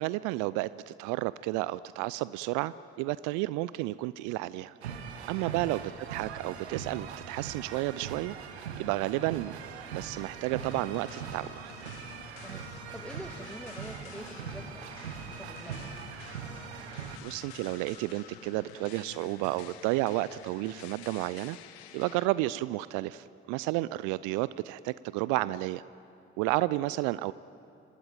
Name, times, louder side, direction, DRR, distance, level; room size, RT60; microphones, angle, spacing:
voice 1, 0.0-4.7 5.3-8.4 8.8-9.5 9.9-11.5 17.2-21.6 21.9-25.8 26.4-27.3, right 18 dB, 65° right, 18 dB, 0.5 m, -31 dB
sound 1, 4.8-17.2, right 7 dB, 85° right, 1.1 m, -41 dB
voice 2, 5.3-5.6 12.4-15.9 25.2-25.5, left 1 dB, 5° left, 8 dB, 1.6 m, -47 dB
sound 2, 10.6-22.2, left 10 dB, 75° left, 1.0 m, -50 dB
24.5 x 18.0 x 9.1 m, 2.7 s
figure-of-eight pair, 40°, 32 cm